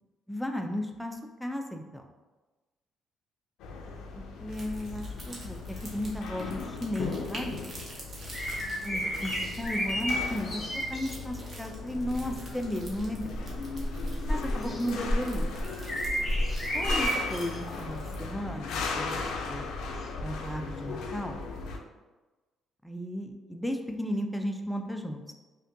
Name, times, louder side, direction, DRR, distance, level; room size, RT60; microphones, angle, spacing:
voice 1, 0.3-2.1 4.1-7.6 8.8-10.5 10.9-13.3 14.3-15.5 16.7-19.7 20.2-21.4 22.8-25.3, left 1 dB, ahead, 4 dB, 0.3 m, -35 dB
sound 1, 3.6-21.8, left 4 dB, 85° left, 0.4 m, -38 dB
sound 2, 4.5-18.3, right 1 dB, 35° right, 0.8 m, -48 dB
sound 3, 8.3-11.1 11.9-12.3 12.9-17.6 18.1-18.2 20.0-20.1, equal, 15° left, 0.8 m, -31 dB
5.0 x 2.2 x 2.6 m, 1.2 s
cardioid pair, 155°, 0 cm